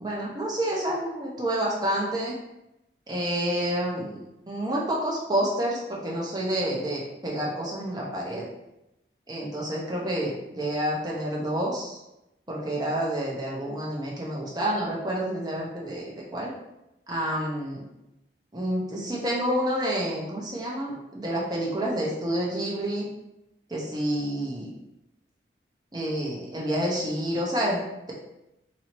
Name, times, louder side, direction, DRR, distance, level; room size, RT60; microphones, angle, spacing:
voice 1, 0.0-2.3 3.1-8.4 9.3-12.0 12.5-16.5 17.1-17.8 18.5-23.1 23.7-24.7 25.9-27.8, right 1 dB, 20° right, -4 dB, 0.7 m, -29 dB
4.1 x 2.7 x 3.0 m, 0.91 s
head